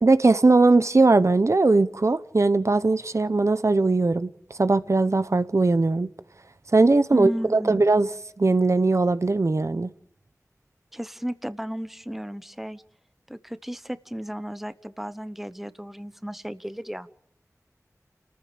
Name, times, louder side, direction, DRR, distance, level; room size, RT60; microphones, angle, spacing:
voice 1, 0.0-6.1 6.7-8.1 8.4-9.9, right 3 dB, 55° right, 0.9 m, -20 dB
voice 2, 7.1-7.8 10.9-12.8 13.3-17.1, equal, 5° right, 1.0 m, -34 dB
29.5 x 14.5 x 7.2 m
wide cardioid pair, 55°, 6 cm